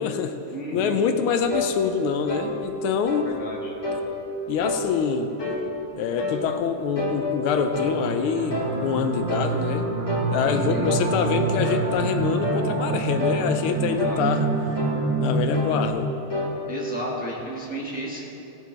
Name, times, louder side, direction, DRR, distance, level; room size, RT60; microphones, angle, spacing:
voice 1, 0.0-0.4 0.7-3.4 4.5-5.3 5.9-9.9 10.2-14.5 15.2-16.1, left 6 dB, 80° left, 7 dB, 1.4 m, -25 dB
voice 2, 0.5-1.0 3.2-3.7 10.4-10.9 14.0-14.2 16.6-18.2, equal, 5° right, -4 dB, 1.0 m, -32 dB
sound 1, 1.5-1.7 2.3-2.5 3.1-3.3 3.8-4.1 4.6-4.9 5.4-5.7 6.2-6.4 7.0-8.0 8.5-8.8 9.3-9.5 10.1-10.3 10.8-11.1 11.6-11.9 12.4-12.7 13.2-13.4 14.0-14.2 14.8-15.0 15.5-15.8 16.3-16.5, left 2 dB, 20° left, 0.6 m, -28 dB
sound 2, 7.8-15.9, right 3 dB, 90° right, 2.0 m, -27 dB
18.0 x 6.4 x 3.4 m, 2.9 s
omnidirectional pair, 2.4 m